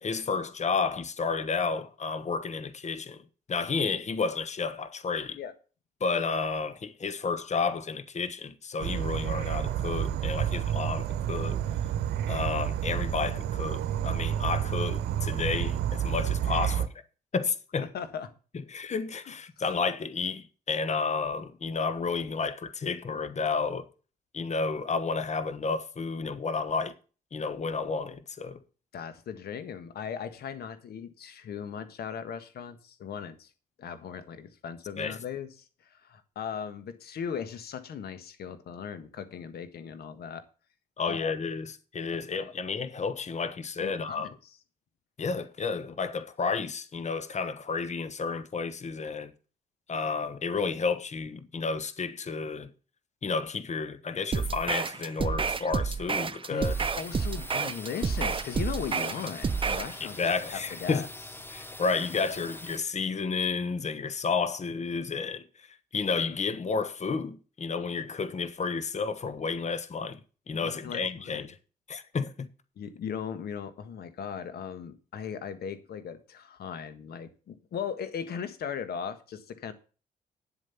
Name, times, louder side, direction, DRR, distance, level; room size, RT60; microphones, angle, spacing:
voice 1, 0.0-3.2 3.5-5.4 6.0-11.6 12.3-16.9 17.3-17.9 18.7-23.9 24.3-26.9 27.3-28.6 35.0-35.2 41.0-44.3 45.2-49.3 49.9-52.7 53.2-56.7 60.0-61.1 61.5-70.2 70.5-71.6 71.9-72.5, left 4 dB, 40° left, 1.3 m, -31 dB
Insect / Frog, 8.8-16.9, right 10 dB, 70° right, 0.9 m, -30 dB
voice 2, 17.8-18.3 28.9-33.5 33.8-35.5 35.8-40.4 41.1-41.3 42.1-42.5 43.8-44.3 56.5-60.3 60.5-61.1 70.5-71.5 72.8-79.7, left 7 dB, 65° left, 1.5 m, -38 dB
sound 1, 54.3-59.9, right 5 dB, 30° right, 0.7 m, -30 dB
sound 2, 56.6-62.8, left 1 dB, 10° left, 1.2 m, -44 dB
9.7 x 7.8 x 5.8 m
hypercardioid pair, 50°, 17 cm